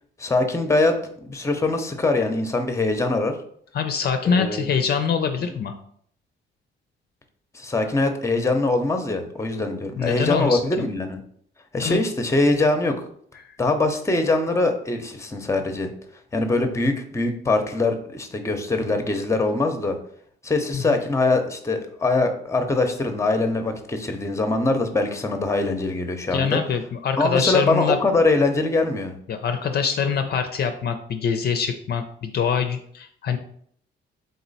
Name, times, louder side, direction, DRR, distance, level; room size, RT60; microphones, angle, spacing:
voice 1, 0.2-0.9 1.2-3.4 4.2-4.7 7.5-11.2 11.7-12.9 13.6-15.9 16.3-20.0 20.4-26.6 27.2-29.2, left 2 dB, 15° left, 6 dB, 0.6 m, -22 dB
voice 2, 3.7-5.8 10.0-10.6 11.8-12.0 20.7-21.0 26.3-28.0 29.3-33.4, left 6 dB, 55° left, 7 dB, 0.5 m, -24 dB
3.8 x 3.0 x 4.0 m, 0.63 s
cardioid pair, 90°, 20 cm